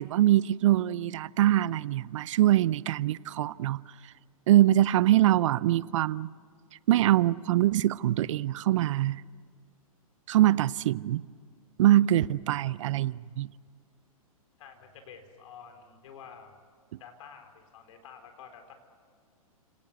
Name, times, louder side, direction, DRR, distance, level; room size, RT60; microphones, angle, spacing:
voice 1, 0.0-3.8 4.5-6.3 6.9-9.2 10.3-11.2 11.8-13.5, right 13 dB, 55° right, 0.6 m, -23 dB
voice 2, 14.6-16.5 17.0-18.7, left 7 dB, 60° left, 4.3 m, -49 dB
30.0 x 18.5 x 9.3 m
hypercardioid pair, 115°, 19 cm